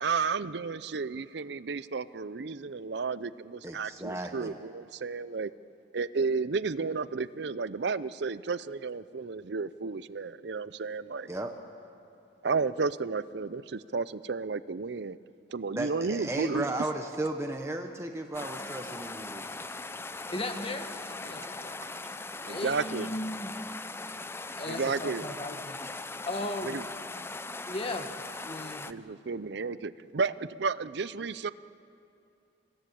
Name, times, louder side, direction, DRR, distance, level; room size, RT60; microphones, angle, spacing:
voice 1, 0.0-5.5 5.9-11.3 12.4-15.2 15.5-16.7 21.4-21.5 22.5-23.1 24.6-25.3 26.6-26.8 28.9-31.5, right 4 dB, 60° right, 16 dB, 0.6 m, -32 dB
voice 2, 3.6-4.6 11.3-11.5 15.7-19.7, right 1 dB, 15° right, 3 dB, 1.0 m, -35 dB
sound 1, 18.3-28.9, left 3 dB, 15° left, 0.5 m, -40 dB
voice 3, 20.3-21.8 22.5-23.5 24.6-25.8 26.3-26.8 27.7-28.9, left 1 dB, 30° left, 6 dB, 1.4 m, -37 dB
26.5 x 17.0 x 8.6 m, 2.7 s
head